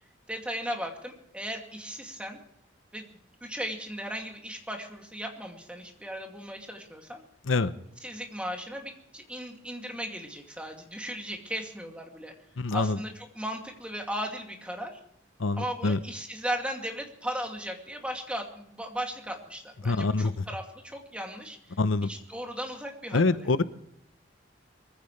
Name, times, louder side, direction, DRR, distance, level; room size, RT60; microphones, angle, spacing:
voice 1, 0.3-2.4 2.9-7.2 8.0-12.3 12.7-15.0 15.6-23.5, equal, 5° right, 2 dB, 2.4 m, -37 dB
voice 2, 12.6-13.0 15.4-16.0 19.8-20.4 21.8-22.1 23.1-23.6, left 3 dB, 85° left, 13 dB, 0.8 m, -25 dB
23.0 x 15.0 x 3.2 m, 0.72 s
head